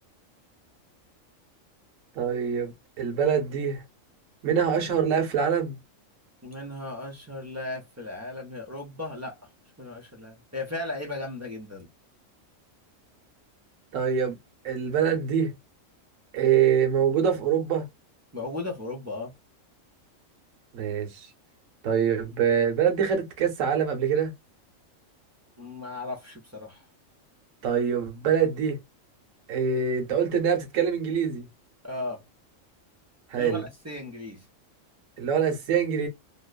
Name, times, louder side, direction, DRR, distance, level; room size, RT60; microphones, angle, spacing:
voice 1, 2.2-3.8 4.4-5.7 13.9-14.4 14.6-15.5 16.3-17.9 20.7-21.2 21.8-24.3 27.6-28.8 29.5-31.5 33.3-33.6 35.2-36.1, right 7 dB, 70° right, 1.2 m, -24 dB
voice 2, 6.4-9.5 9.8-11.9 18.3-19.3 25.6-26.8 31.8-32.2 33.3-34.4, left 2 dB, 20° right, 0.5 m, -36 dB
2.9 x 2.1 x 2.2 m
omnidirectional pair, 1.4 m